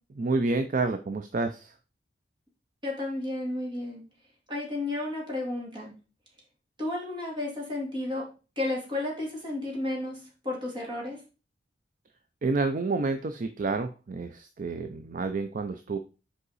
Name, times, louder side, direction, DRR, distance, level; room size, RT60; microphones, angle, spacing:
voice 1, 0.2-1.7 12.4-16.0, right 3 dB, 45° right, 8 dB, 0.5 m, -29 dB
voice 2, 2.8-4.0 4.5-5.9 6.8-8.3 8.6-11.2, left 2 dB, 25° right, -2 dB, 2.3 m, -32 dB
5.4 x 4.9 x 4.0 m, 0.34 s
head